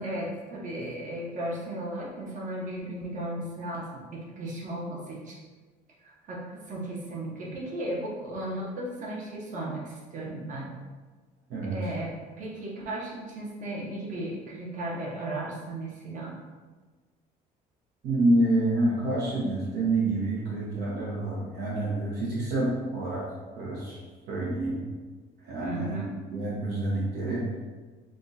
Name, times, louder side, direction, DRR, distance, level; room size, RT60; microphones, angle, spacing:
voice 1, 0.0-5.4 6.0-10.7 11.7-12.1 12.4-16.4 25.6-26.2, right 1 dB, 50° right, -4 dB, 1.1 m, -35 dB
voice 2, 18.0-23.2 23.5-24.0 24.3-24.8 25.4-25.9 26.3-27.5, right 2 dB, 70° right, -5 dB, 1.0 m, -27 dB
5.9 x 2.4 x 2.7 m, 1.3 s
cardioid pair, 110°, 17 cm